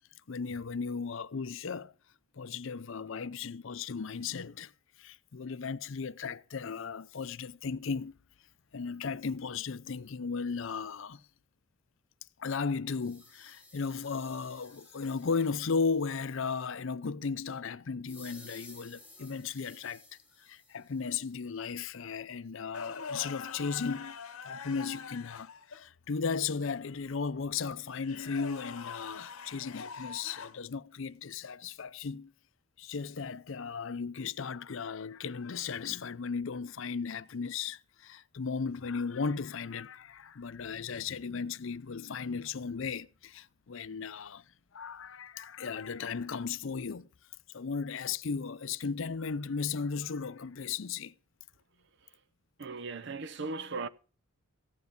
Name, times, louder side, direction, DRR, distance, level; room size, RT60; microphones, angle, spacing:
voice 1, 0.3-1.9 2.4-4.7 5.0-8.2 8.7-11.2 12.4-20.0 20.4-24.2 24.4-32.3 32.8-44.4 44.7-47.1 47.5-51.1, left 5 dB, 65° left, 0.5 m, -36 dB
sound 1, 13.0-16.3 18.1-21.6, left 2 dB, 5° right, 1.8 m, -56 dB
sound 2, 22.7-25.8 27.9-30.6 33.0-33.2 35.4-35.8 38.7-38.9 40.9-41.2, left 5 dB, 85° left, 1.0 m, -44 dB
voice 2, 52.6-53.9, right 4 dB, 55° right, 0.6 m, -37 dB
15.0 x 9.5 x 5.2 m
head